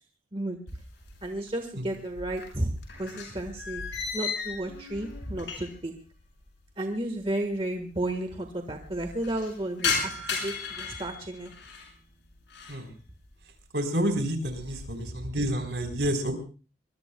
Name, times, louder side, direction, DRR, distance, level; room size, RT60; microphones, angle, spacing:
sound 1, 0.7-1.5 1.8-5.9 6.2-6.3 7.2-7.3 7.4-7.5 7.8-8.3 8.7-11.9 12.3-12.9 13.3-13.7 14.1-15.0, left 5 dB, 70° left, 5.8 m, -35 dB
voice 1, 1.2-2.7 3.0-3.8 4.1-5.9 6.8-11.5, right 1 dB, 30° right, 5 dB, 1.4 m, -33 dB
voice 2, 13.7-16.4, equal, 60° right, 5 dB, 3.8 m, -29 dB
24.0 x 21.0 x 2.2 m, 0.35 s
head